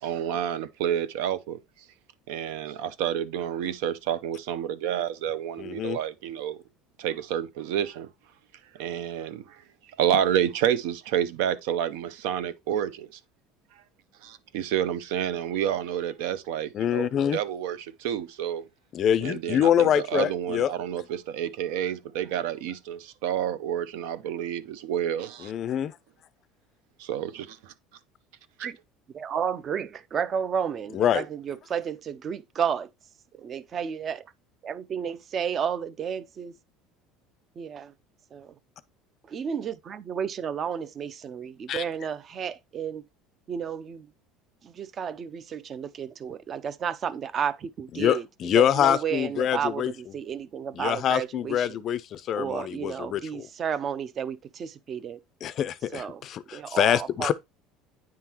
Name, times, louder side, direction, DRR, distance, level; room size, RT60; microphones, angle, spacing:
voice 1, 0.0-1.6 2.3-6.6 7.0-8.1 8.8-9.4 10.0-13.1 14.2-18.6 19.2-25.5 27.0-27.7, right 10 dB, 80° right, 0.6 m, -29 dB
voice 2, 5.6-6.0 16.7-17.4 18.9-20.7 25.4-25.9 30.9-31.2 41.7-41.8 48.0-49.9 50.8-53.5 55.4-57.3, left 10 dB, 35° left, 0.4 m, -25 dB
voice 3, 29.1-32.9 33.3-34.3 34.6-36.6 37.6-37.9 38.3-38.5 39.3-43.0 43.5-44.1 44.6-48.3 48.5-51.8 52.3-55.2 55.9-56.2 56.5-57.3, right 7 dB, 30° right, 0.4 m, -32 dB
9.4 x 3.7 x 2.9 m
cardioid pair, 160°, 0 cm